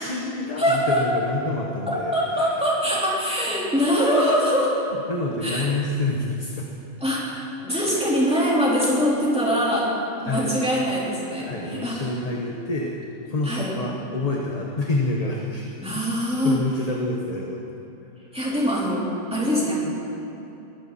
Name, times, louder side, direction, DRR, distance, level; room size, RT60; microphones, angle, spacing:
voice 1, 0.0-2.1 4.9-6.7 7.9-8.1 10.3-10.5 11.4-13.0 13.3-17.6, left 2 dB, 30° left, -1 dB, 1.1 m, -28 dB
voice 2, 0.6-1.1 1.9-4.8 5.4-5.7 7.0-9.9 10.2-12.0 13.4-13.7 15.8-16.6 18.3-19.0 19.3-19.8, equal, 5° right, -6 dB, 3.8 m, -23 dB
21.0 x 14.5 x 4.2 m, 3.0 s
omnidirectional pair, 1.4 m